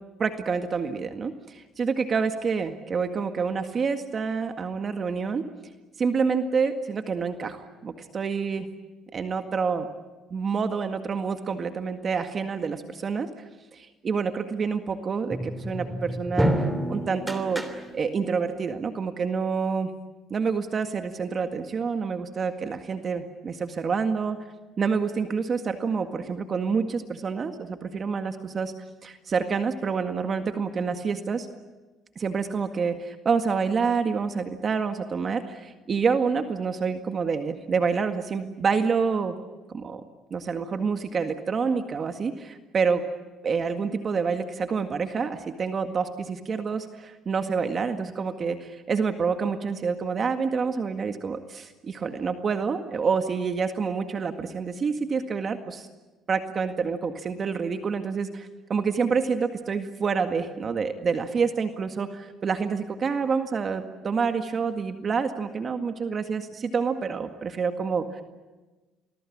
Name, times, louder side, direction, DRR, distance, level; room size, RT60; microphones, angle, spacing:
voice 1, 0.2-5.5 6.0-8.7 9.1-9.9 10.3-13.3 13.7-19.9 20.3-24.4 24.8-28.7 29.0-31.5 32.2-39.4 39.7-40.0 40.3-43.0 43.4-55.9 56.3-68.2, right 5 dB, 40° right, 7 dB, 1.9 m, -27 dB
sound 1, 15.3-18.3, right 1 dB, 10° right, 3.2 m, -28 dB
28.5 x 21.0 x 8.7 m, 1.2 s
cardioid pair, 95°, 0 cm